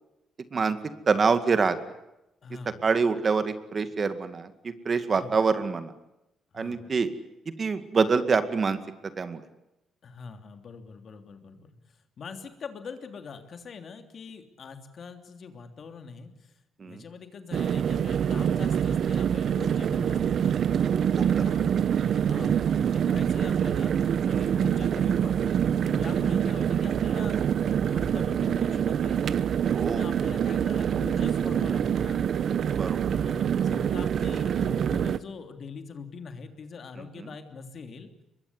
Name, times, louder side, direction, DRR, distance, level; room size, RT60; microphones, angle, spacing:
voice 1, 1.1-1.8 2.8-5.9 6.5-7.1 7.5-8.8 9.2-9.4 16.8-17.0 20.8-21.4 24.3-24.5 29.7-30.1 32.7-33.1 37.2-37.3, right 5 dB, 40° right, 10 dB, 2.1 m, -26 dB
voice 2, 2.4-2.8 5.2-5.4 6.5-6.9 10.0-11.7 12.2-16.3 16.8-20.6 21.4-21.7 22.0-23.9 24.3-25.5 25.8-27.4 27.8-29.3 30.0-32.3 33.1-38.1, left 5 dB, 50° left, 7 dB, 3.1 m, -43 dB
sound 1, 17.5-35.2, right 8 dB, 60° right, 1.0 m, -25 dB
24.0 x 21.5 x 9.8 m, 0.89 s
cardioid pair, 90°, 0 cm